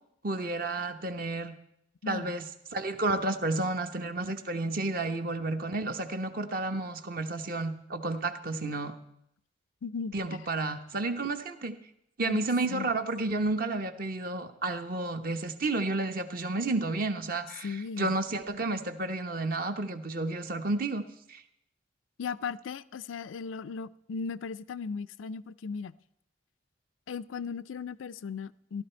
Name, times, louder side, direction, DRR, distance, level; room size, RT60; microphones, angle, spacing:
voice 1, 0.2-1.5 2.1-2.4 2.7-8.9 10.1-11.7 12.2-21.4, right 2 dB, 50° right, 1.0 m, -31 dB
voice 2, 9.8-10.1 12.2-12.9 17.6-18.2 22.2-26.0 27.1-28.8, left 5 dB, 85° left, 0.4 m, -37 dB
14.5 x 12.0 x 4.4 m
head